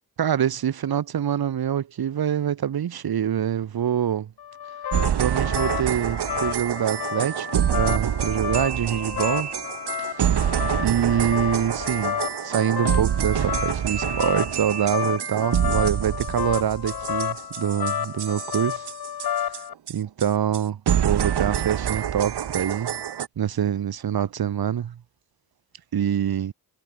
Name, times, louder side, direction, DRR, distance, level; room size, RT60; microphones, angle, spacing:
voice 1, 0.2-4.3 5.2-9.5 10.0-10.5 10.8-18.9 19.4-19.5 19.9-22.9 23.4-25.0 25.9-26.5, right 9 dB, 65° right, 1.6 m, -25 dB
sound 1, 4.4-19.7, left 9 dB, 70° left, 1.7 m, -31 dB
sound 2, 4.9-19.6 19.9-20.0 20.2-20.3 20.5-20.6 20.9-23.3, right 9 dB, 90° right, 3.6 m, -26 dB
wide cardioid pair, 120°, 39 cm